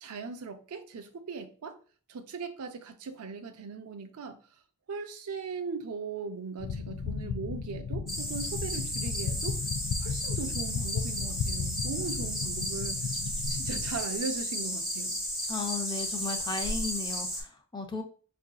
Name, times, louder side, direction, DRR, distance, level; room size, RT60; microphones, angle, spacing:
voice 1, 0.0-1.8 2.1-4.4 4.9-9.6 10.0-13.1 13.5-15.2, right 5 dB, 80° right, 0.5 m, -39 dB
sound 1, 6.6-14.0, left 5 dB, 90° left, 0.3 m, -35 dB
sound 2, 8.1-17.4, equal, ahead, 0.8 m, -34 dB
voice 2, 15.5-18.0, left 4 dB, 20° left, 0.4 m, -35 dB
4.7 x 2.6 x 2.3 m
head